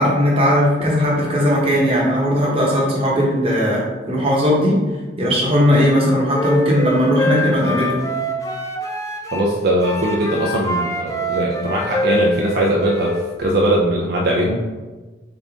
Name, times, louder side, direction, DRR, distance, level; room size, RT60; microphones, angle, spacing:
voice 1, 0.0-4.8 5.2-8.0, equal, 30° right, -4 dB, 1.0 m, -17 dB
Wind instrument woodwind instrument, 6.3-9.5 9.8-13.2, equal, 15° left, 0.4 m, -24 dB
voice 2, 9.3-14.6, right 1 dB, 55° right, -2 dB, 0.5 m, -20 dB
3.9 x 3.6 x 3.6 m, 1.3 s
head